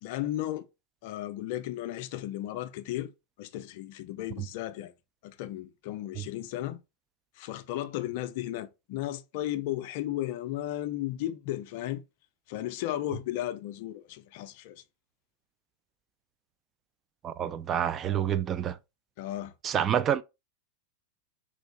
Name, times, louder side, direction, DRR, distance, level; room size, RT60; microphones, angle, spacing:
voice 1, 0.0-0.7 1.0-3.1 3.4-4.9 5.2-6.8 7.4-12.0 12.5-14.8 19.2-19.5, left 13 dB, 50° left, 0.4 m, -34 dB
voice 2, 17.2-18.8 19.6-20.2, right 9 dB, 25° right, 0.3 m, -28 dB
4.4 x 2.5 x 2.9 m
figure-of-eight pair, 90°, 0 cm